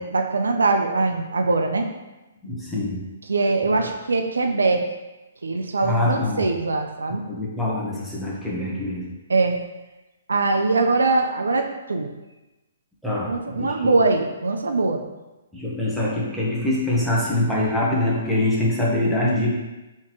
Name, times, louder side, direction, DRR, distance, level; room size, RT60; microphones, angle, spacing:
voice 1, 0.0-1.9 3.3-4.8 5.4-7.2 9.3-9.6 10.3-12.1 13.2-15.0, right 3 dB, 85° right, 5 dB, 0.4 m, -22 dB
voice 2, 2.4-3.1 3.7-3.9 5.8-6.5 7.3-9.1 13.0-14.0 15.5-19.5, left 1 dB, ahead, -8 dB, 1.2 m, -24 dB
4.3 x 3.6 x 3.1 m, 1.1 s
hypercardioid pair, 135°, 0 cm